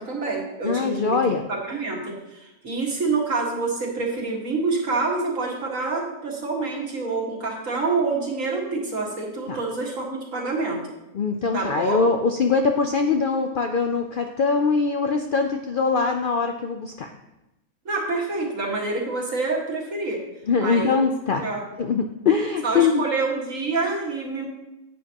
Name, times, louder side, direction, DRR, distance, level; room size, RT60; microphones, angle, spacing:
voice 1, 0.0-1.2 1.5-10.8 11.5-12.1 17.9-20.2 20.6-21.0 21.4-21.6 22.6-24.5, right 3 dB, 60° right, -2 dB, 2.2 m, -27 dB
voice 2, 0.6-1.4 9.5-9.6 11.1-17.1 20.5-21.4 21.8-23.0, left 5 dB, 60° left, 4 dB, 0.5 m, -22 dB
10.5 x 8.8 x 2.9 m, 0.95 s
omnidirectional pair, 1.5 m